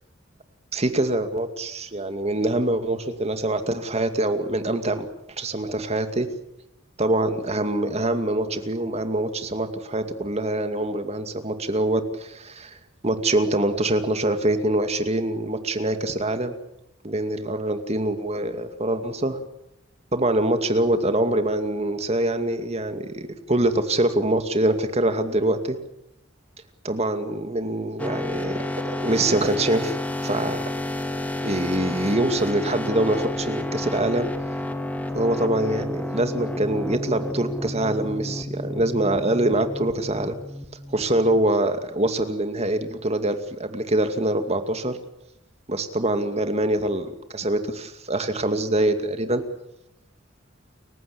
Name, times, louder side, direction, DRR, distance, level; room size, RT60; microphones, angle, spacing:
voice 1, 0.7-5.1 5.4-6.3 7.0-12.8 13.0-16.5 17.0-19.4 20.1-25.8 26.8-30.0 30.2-30.6 31.4-34.3 35.1-40.4 40.9-45.0 45.7-49.4, right 1 dB, 35° right, 8 dB, 2.3 m, -24 dB
sound 1, 28.0-41.5, left 1 dB, 10° left, 2.2 m, -31 dB
30.0 x 16.0 x 8.7 m, 0.81 s
head